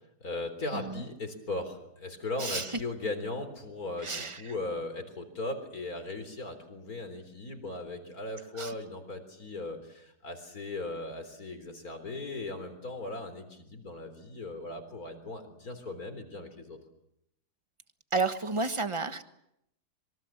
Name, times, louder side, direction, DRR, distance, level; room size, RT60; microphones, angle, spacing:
voice 1, 0.2-16.8, left 2 dB, 60° left, 8 dB, 4.3 m, -38 dB
voice 2, 4.0-4.4 8.6-8.7 18.1-19.2, right 3 dB, 20° right, 9 dB, 1.3 m, -31 dB
26.5 x 23.5 x 7.4 m, 0.79 s
omnidirectional pair, 1.8 m